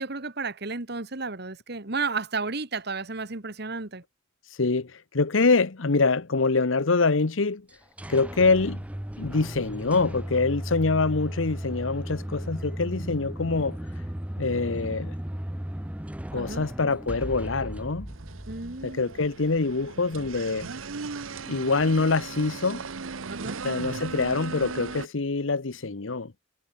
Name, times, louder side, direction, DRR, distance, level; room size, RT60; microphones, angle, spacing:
voice 1, 0.0-4.0 16.3-16.7 18.5-19.1 23.3-23.6, right 4 dB, 55° right, 1.8 m, -32 dB
voice 2, 4.6-7.7 8.1-8.8 9.2-13.8 14.4-15.1 16.3-18.1 18.8-20.7 21.5-22.8 23.6-26.3, left 3 dB, 75° left, 1.0 m, -25 dB
sound 1, 7.7-19.3, equal, 5° right, 0.6 m, -35 dB
sound 2, 18.1-25.1, right 4 dB, 85° right, 1.0 m, -37 dB
head